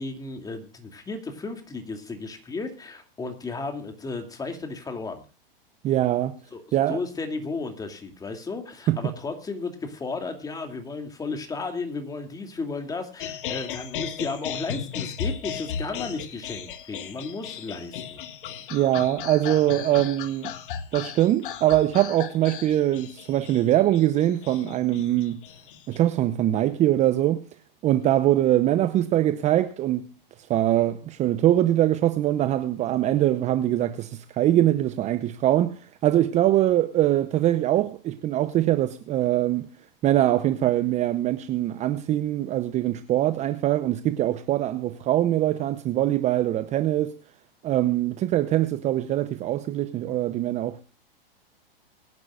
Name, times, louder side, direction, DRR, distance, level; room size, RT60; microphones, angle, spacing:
voice 1, 0.0-5.2 6.5-6.6 6.9-18.2, left 3 dB, 10° left, 2.6 m, -34 dB
voice 2, 5.8-6.3 6.7-7.0 8.9-9.0 18.7-20.5 20.9-25.4 25.9-27.4 27.8-30.1 30.5-39.7 40.0-47.1 47.6-50.8, right 13 dB, 25° right, 0.7 m, -23 dB
sound 1, 13.2-26.0, left 8 dB, 60° left, 2.0 m, -36 dB
23.5 x 10.5 x 2.5 m
hypercardioid pair, 125°, 29 cm